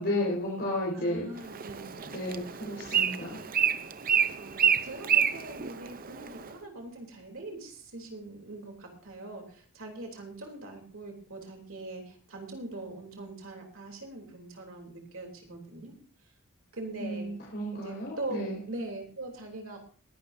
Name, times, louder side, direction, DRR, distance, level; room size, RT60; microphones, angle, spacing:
voice 1, 0.0-1.3 2.0-3.4 17.0-18.6, left 1 dB, 50° left, -4 dB, 4.4 m, -33 dB
voice 2, 0.9-2.0 4.4-16.0 16.7-17.3 17.7-19.8, right 2 dB, 65° right, 2 dB, 3.3 m, -42 dB
Bird, 1.4-6.5, right 8 dB, 40° right, 0.6 m, -29 dB
21.5 x 11.0 x 2.7 m, 0.42 s
head